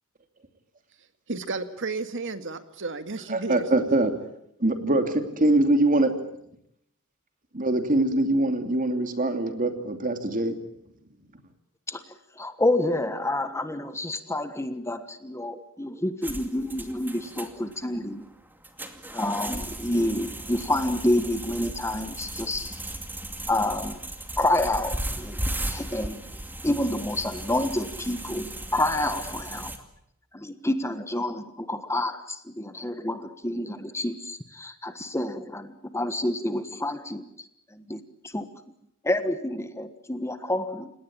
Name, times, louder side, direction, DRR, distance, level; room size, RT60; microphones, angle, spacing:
voice 1, 1.3-3.7, right 3 dB, 60° right, 10 dB, 2.1 m, -32 dB
voice 2, 3.3-4.2 4.6-6.1 7.6-10.6, right 2 dB, 40° right, 7 dB, 2.8 m, -23 dB
voice 3, 12.3-18.2 19.1-22.8 23.5-24.0 24.4-26.2 26.6-29.7 30.3-38.5 39.0-40.9, left 1 dB, 15° left, 10 dB, 1.4 m, -28 dB
sound 1, 16.2-29.8, right 1 dB, 10° right, 2.4 m, -36 dB
30.0 x 18.0 x 8.8 m, 0.77 s
head